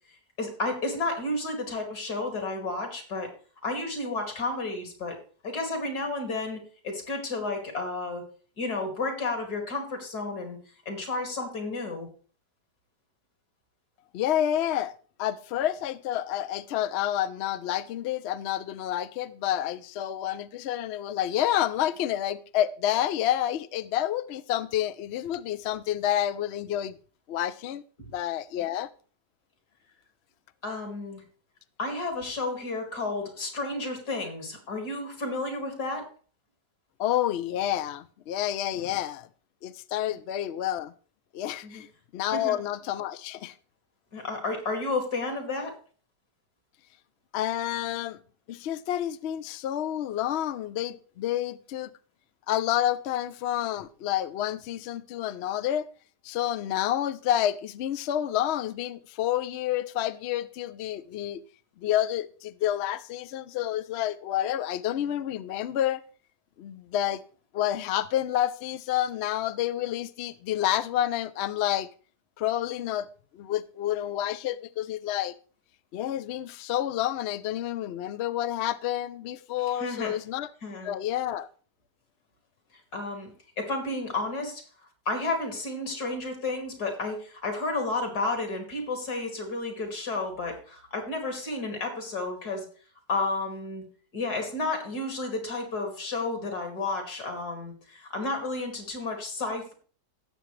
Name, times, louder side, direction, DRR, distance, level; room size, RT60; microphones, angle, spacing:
voice 1, 0.4-3.3 3.6-5.2 5.4-8.2 8.6-10.6 10.9-12.1 28.0-28.1 30.6-31.2 31.8-36.1 40.1-40.2 41.6-41.8 42.3-42.6 44.1-45.7 79.7-80.1 80.6-81.0 82.9-83.3 83.6-84.6 85.1-92.7 93.1-93.8 94.1-99.7, left 2 dB, 65° left, 2.9 m, -32 dB
voice 2, 14.1-14.9 15.2-27.0 27.3-27.8 28.1-28.9 37.0-39.3 39.6-40.9 41.3-41.9 42.1-43.5 47.3-48.2 48.5-51.9 52.5-55.9 56.2-61.4 61.8-66.0 66.6-67.2 67.5-71.9 72.4-73.1 73.3-75.3 75.9-80.5 80.8-81.5, left 12 dB, 80° left, 0.5 m, -29 dB
17.0 x 7.1 x 3.2 m
omnidirectional pair, 1.8 m